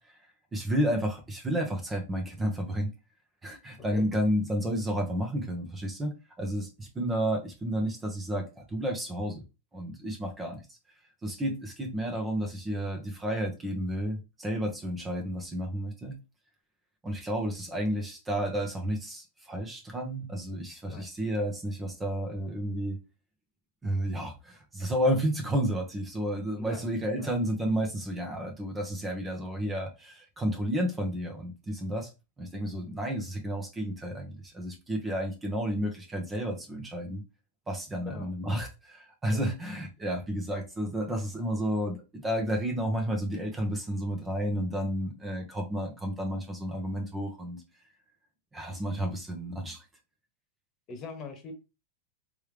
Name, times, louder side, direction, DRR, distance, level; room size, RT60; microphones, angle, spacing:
voice 1, 0.5-2.9 3.4-9.4 9.7-10.6 11.2-16.1 17.0-23.0 23.8-32.1 32.4-37.2 37.7-47.6 48.5-49.8, equal, 15° right, 1.2 m, -31 dB
voice 2, 26.6-26.9 27.1-27.3 38.0-38.3 39.3-39.5 50.9-51.5, left 5 dB, 35° left, 1.4 m, -42 dB
3.5 x 3.4 x 3.4 m
hypercardioid pair, 115°, 0 cm